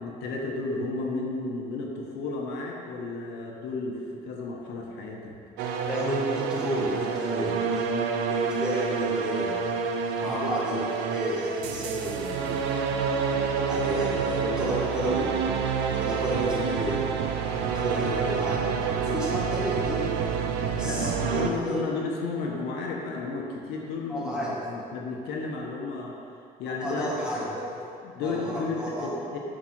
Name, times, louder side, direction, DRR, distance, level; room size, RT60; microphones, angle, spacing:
voice 1, 0.0-5.4 10.2-10.4 20.8-26.2 26.6-27.1 28.0-29.4, left 3 dB, 90° left, 0 dB, 1.1 m, -33 dB
sound 1, 5.6-21.5, right 6 dB, 90° right, 0.6 m, -28 dB
voice 2, 5.9-9.7 10.2-12.6 13.7-15.5 15.9-17.0 17.7-20.2 20.7-21.8 24.1-24.6 26.8-27.9 28.2-29.2, equal, 5° right, -6 dB, 1.9 m, -31 dB
6.1 x 5.1 x 6.0 m, 2.6 s
cardioid pair, 110°, 17 cm